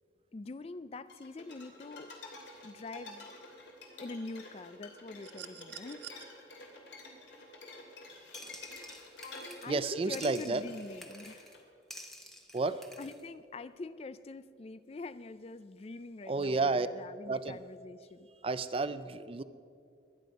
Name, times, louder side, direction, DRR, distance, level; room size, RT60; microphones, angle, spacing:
voice 1, 0.3-2.2 2.6-3.3 4.0-6.0 9.6-11.5 13.0-18.3, left 3 dB, 35° left, 14 dB, 0.4 m, -44 dB
sound 1, 1.1-11.6, left 2 dB, 70° left, 2.7 m, -50 dB
sound 2, 5.2-6.2 7.8-7.9, right 12 dB, 70° right, 0.8 m, -47 dB
sound 3, 8.3-9.9 10.1-11.6 11.9-13.2, equal, ahead, 1.1 m, -50 dB
voice 2, 9.7-10.6 12.5-12.8 16.3-16.9 17.3-17.6 18.4-19.4, right 3 dB, 30° right, 14 dB, 0.4 m, -31 dB
22.5 x 9.4 x 5.3 m, 2.4 s
head